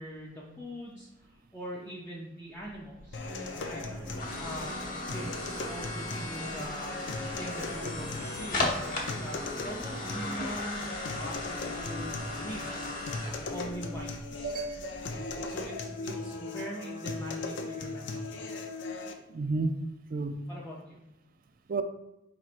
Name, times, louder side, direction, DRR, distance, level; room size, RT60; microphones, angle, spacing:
voice 1, 0.0-3.2 3.6-3.8 4.4-6.9 7.4-14.5 15.4-18.5 20.5-21.0, equal, 10° left, -6 dB, 0.5 m, -42 dB
sound 1, 2.6-15.7, left 2 dB, 45° left, 0.9 m, -38 dB
sound 2, 3.1-19.1, left 3 dB, 60° left, 0.5 m, -39 dB
Guitar, 3.2-10.6, right 1 dB, 70° right, 0.9 m, -45 dB
voice 2, 14.4-15.0 19.3-19.7 20.1-20.4 21.7-21.8, right 3 dB, 45° right, 8 dB, 0.3 m, -31 dB
4.5 x 4.2 x 2.5 m, 0.90 s
head